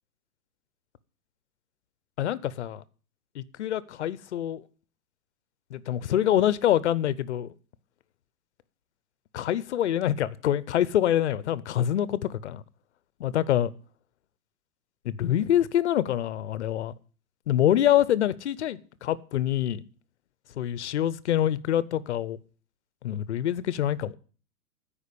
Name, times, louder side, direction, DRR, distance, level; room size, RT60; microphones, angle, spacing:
voice 1, 2.2-2.8 3.4-4.6 5.7-7.5 9.3-12.6 13.2-13.7 15.1-16.9 17.5-19.8 20.6-22.4 23.0-24.2, left 11 dB, 50° left, 0.6 m, -25 dB
13.5 x 5.2 x 8.4 m
hypercardioid pair, 175°, 46 cm